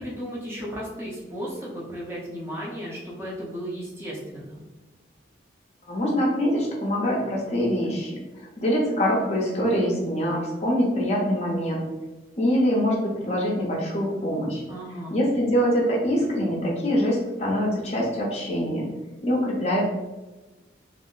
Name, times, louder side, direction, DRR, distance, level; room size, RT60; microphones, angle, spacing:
voice 1, 0.0-4.6 14.7-15.2, equal, 15° right, -6 dB, 0.5 m, -35 dB
voice 2, 5.9-11.8 12.4-14.6 15.1-18.9 19.2-19.8, equal, 35° left, -2 dB, 0.5 m, -24 dB
2.4 x 2.0 x 3.7 m, 1.1 s
head